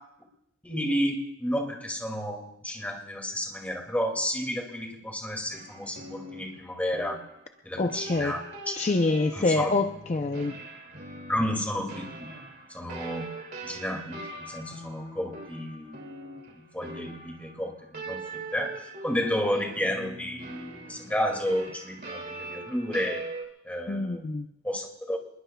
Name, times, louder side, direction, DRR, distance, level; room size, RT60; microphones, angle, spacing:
voice 1, 0.6-7.2 7.6-8.4 8.7-8.8 9.3-9.7 11.3-12.3 12.7-13.3 13.6-16.1 16.6-23.2 23.6-24.3 24.6-25.2, equal, 10° left, 2 dB, 2.2 m, -31 dB
sound 1, 5.5-23.4, right 2 dB, 50° right, 2.4 m, -42 dB
voice 2, 7.8-8.3 8.8-10.5 23.9-24.5, left 3 dB, 35° left, 6 dB, 0.5 m, -26 dB
27.5 x 21.0 x 2.3 m, 0.81 s
head